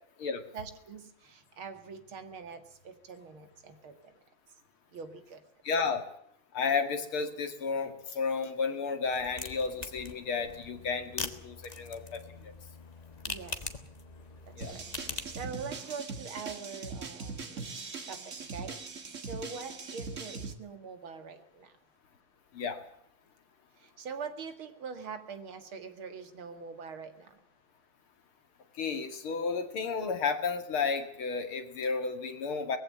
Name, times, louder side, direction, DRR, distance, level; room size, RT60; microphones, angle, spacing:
voice 1, 0.5-4.2 4.9-5.4 13.3-13.8 14.4-17.7 18.0-21.7 23.8-27.4, right 5 dB, 75° right, 8 dB, 2.8 m, -44 dB
voice 2, 5.6-6.0 6.5-12.5 14.6-14.7 22.5-22.8 28.8-32.8, left 5 dB, 85° left, 7 dB, 3.0 m, -32 dB
sound 1, 9.0-15.4, left 3 dB, 20° left, 1.3 m, -42 dB
sound 2, 14.6-20.5, right 4 dB, 40° right, 1.9 m, -41 dB
20.5 x 15.5 x 8.6 m, 0.70 s
omnidirectional pair, 2.3 m